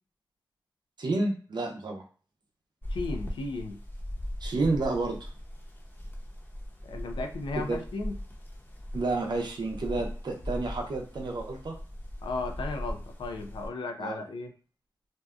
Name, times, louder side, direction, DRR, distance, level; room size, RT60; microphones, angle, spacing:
voice 1, 1.0-2.0 4.4-5.3 7.7-7.8 8.9-11.7 14.0-14.1, right 3 dB, 65° right, 2 dB, 0.6 m, -30 dB
sound 1, 2.8-13.7, equal, 25° left, 0.7 m, -39 dB
voice 2, 2.9-3.8 6.9-8.2 12.2-14.5, left 3 dB, 90° left, 5 dB, 0.4 m, -35 dB
2.6 x 2.2 x 2.4 m, 0.39 s
cardioid pair, 50°, 8 cm